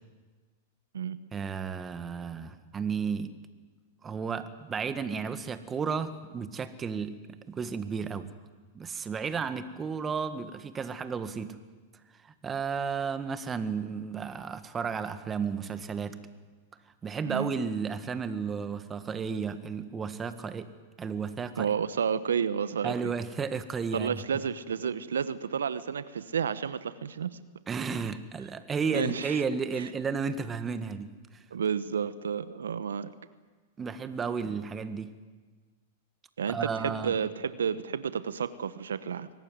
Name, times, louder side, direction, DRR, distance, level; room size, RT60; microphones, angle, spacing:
voice 1, 1.3-3.3 4.0-7.2 7.5-8.3 8.7-11.6 12.2-16.2 17.0-20.7 21.0-21.7 22.8-24.2 27.7-31.1 33.8-35.1 36.5-37.1, right 5 dB, 20° right, 11 dB, 1.7 m, -33 dB
voice 2, 21.6-23.1 23.9-27.4 28.9-29.4 29.8-29.9 31.5-33.1 36.4-39.3, right 7 dB, 85° right, 14 dB, 0.9 m, -31 dB
23.5 x 18.5 x 9.5 m, 1.3 s
hypercardioid pair, 110°, 0 cm